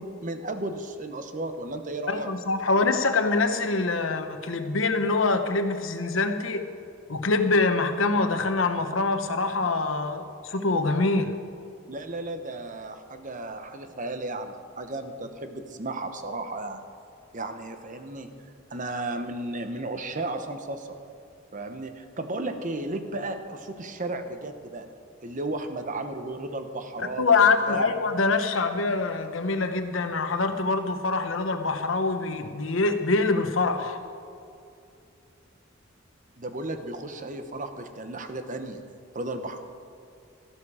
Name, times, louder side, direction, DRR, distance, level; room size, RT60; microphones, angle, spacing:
voice 1, 0.0-2.3 11.9-16.8 17.3-18.3 18.7-21.0 21.5-24.9 25.2-27.4 27.6-27.9 36.4-38.8 39.1-39.6, right 2 dB, 40° right, 8 dB, 1.0 m, -34 dB
voice 2, 2.1-6.6 7.1-11.3 27.0-34.0, left 3 dB, 90° left, 7 dB, 1.0 m, -24 dB
13.5 x 12.0 x 4.9 m, 2.5 s
head